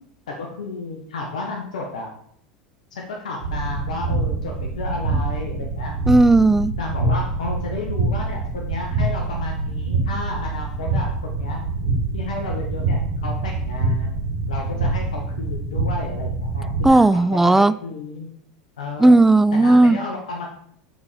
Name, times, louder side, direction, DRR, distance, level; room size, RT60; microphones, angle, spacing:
voice 1, 0.3-2.1 2.9-6.0 6.8-11.6 12.1-14.1 14.5-18.3 18.8-19.1 19.5-20.5, left 3 dB, 85° left, 1 dB, 1.2 m, -32 dB
sound 1, 3.4-16.9, right 3 dB, 75° right, 1.6 m, -25 dB
voice 2, 6.1-6.7 16.8-17.7 19.0-20.0, right 2 dB, 10° right, 15 dB, 0.3 m, -14 dB
8.0 x 4.4 x 5.1 m, 0.68 s
hypercardioid pair, 100°, 4 cm